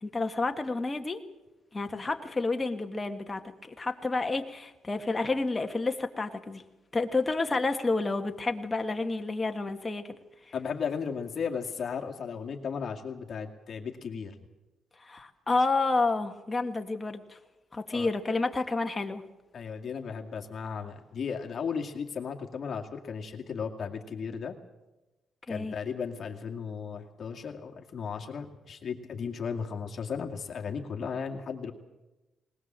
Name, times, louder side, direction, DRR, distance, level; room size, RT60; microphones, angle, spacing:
voice 1, 0.0-1.2 1.7-6.6 6.9-10.0 15.0-17.4 17.7-19.2 25.5-25.8, left 3 dB, 20° left, 5 dB, 1.7 m, -30 dB
voice 2, 10.5-14.3 17.9-18.1 19.5-24.6 25.5-31.7, left 6 dB, 50° left, 3 dB, 2.3 m, -35 dB
20.5 x 20.0 x 7.5 m, 1.0 s
cardioid pair, 115°, 0 cm